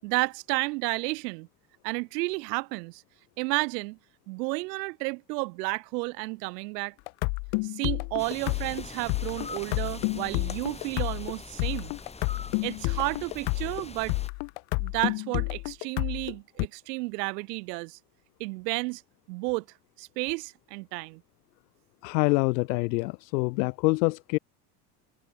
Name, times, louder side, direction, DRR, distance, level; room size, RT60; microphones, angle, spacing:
voice 1, 0.0-1.5 1.8-3.0 3.4-4.0 4.3-6.9 7.6-11.9 12.6-14.1 14.8-18.0 18.4-19.0 19.3-19.6 20.0-21.2, right 26 dB, 80° right, 3.8 m, -32 dB
sound 1, 7.1-16.7, left 33 dB, 65° left, 2.5 m, -30 dB
sound 2, 8.2-14.3, left 4 dB, 15° left, 3.3 m, -43 dB
voice 2, 22.0-24.4, left 25 dB, 80° left, 2.4 m, -25 dB
supercardioid pair, 135°, 48 cm